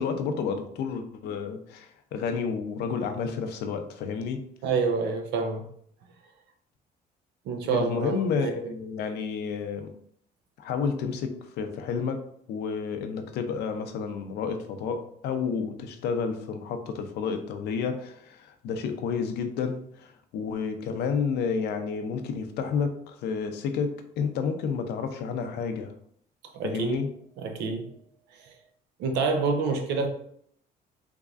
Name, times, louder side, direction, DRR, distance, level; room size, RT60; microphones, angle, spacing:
voice 1, 0.0-4.5 7.7-9.9 10.6-12.2 12.5-25.9 26.6-27.1, left 5 dB, 80° left, 0.6 m, -30 dB
voice 2, 4.6-5.7 7.5-8.7 26.5-27.0 27.4-27.9 28.3-28.5 29.0-30.1, right 4 dB, 80° right, 0.7 m, -28 dB
3.5 x 3.0 x 2.4 m
cardioid pair, 110°, 17 cm